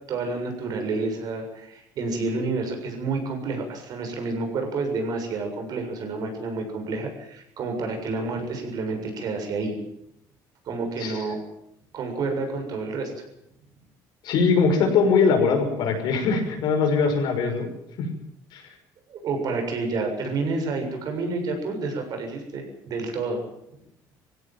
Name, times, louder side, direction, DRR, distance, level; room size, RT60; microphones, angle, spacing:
voice 1, 0.1-9.8 10.7-11.4 11.9-13.1 19.1-23.4, right 3 dB, 55° right, 4 dB, 7.0 m, -29 dB
voice 2, 14.2-17.7 18.5-18.6, left 5 dB, 70° left, 5 dB, 6.0 m, -21 dB
20.0 x 16.5 x 9.2 m, 0.77 s
cardioid pair, 115°, 8 cm